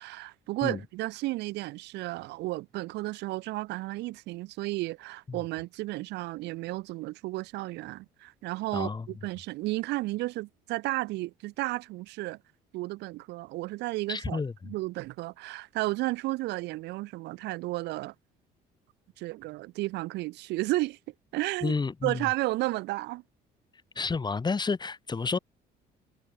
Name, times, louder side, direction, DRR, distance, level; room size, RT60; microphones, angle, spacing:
voice 1, 0.0-12.4 12.7-18.1 19.2-21.0 21.3-21.8 22.0-23.2, right 19 dB, 90° right, 6.0 m, -33 dB
voice 2, 8.7-9.1 14.1-14.5 21.6-22.2 24.0-25.4, left 4 dB, 25° left, 5.6 m, -30 dB
cardioid pair, 110°, 17 cm